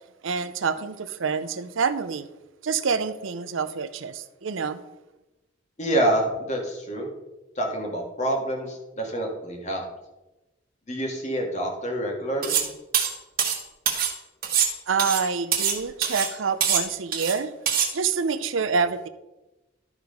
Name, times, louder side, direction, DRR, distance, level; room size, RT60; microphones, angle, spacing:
voice 1, 0.2-2.3 2.6-4.8 14.9-17.5 17.9-19.1, right 5 dB, 85° right, 0.6 m, -27 dB
voice 2, 5.8-7.1 7.6-9.8 10.9-12.6, right 1 dB, 35° left, 2.0 m, -27 dB
sound 1, 12.4-12.7 12.9-14.1 14.4-15.8 16.0-16.3 16.6-17.4 17.7-17.9, right 8 dB, 50° right, 1.4 m, -24 dB
12.0 x 4.8 x 5.2 m
head